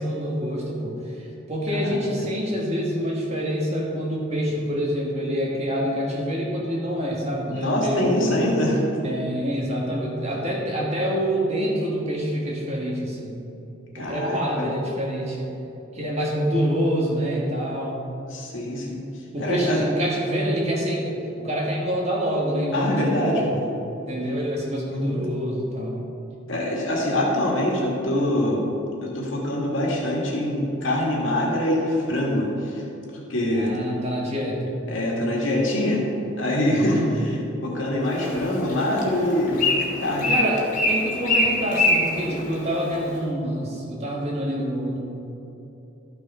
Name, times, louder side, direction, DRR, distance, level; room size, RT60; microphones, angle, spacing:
voice 1, 0.0-8.3 9.0-13.4 14.0-15.5 15.9-18.0 19.3-23.5 24.1-26.0 33.5-34.7 36.7-37.1 40.3-45.0, equal, 30° right, -2 dB, 1.6 m, -26 dB
voice 2, 1.7-2.3 7.5-8.8 13.9-14.7 18.3-19.0 19.4-19.9 22.7-23.5 24.9-25.2 26.5-28.6 29.0-32.8 33.3-33.7 34.9-36.0 36.4-37.3 37.6-40.4, left 1 dB, 70° left, -2 dB, 2.0 m, -24 dB
Bird, 38.0-43.2, left 1 dB, 35° left, 1.7 m, -25 dB
13.0 x 6.2 x 4.3 m, 2.9 s
head